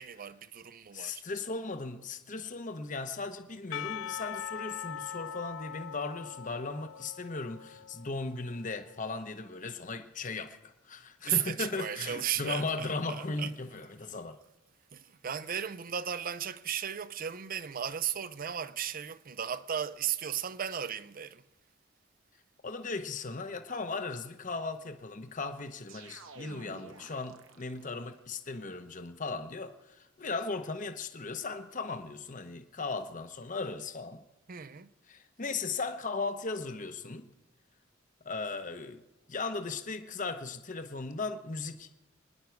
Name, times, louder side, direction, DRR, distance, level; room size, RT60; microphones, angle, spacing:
voice 1, 0.0-1.2 11.2-13.5 14.9-21.4 34.5-34.9, right 9 dB, 45° right, 0.5 m, -35 dB
voice 2, 0.9-14.4 22.6-34.2 35.1-37.3 38.2-39.0 39.3-41.9, left 3 dB, 40° left, 0.9 m, -37 dB
Percussion / Church bell, 3.7-9.0, left 9 dB, 70° left, 0.4 m, -42 dB
sound 1, 25.9-28.1, right 3 dB, 85° right, 1.2 m, -51 dB
26.5 x 10.5 x 4.6 m
head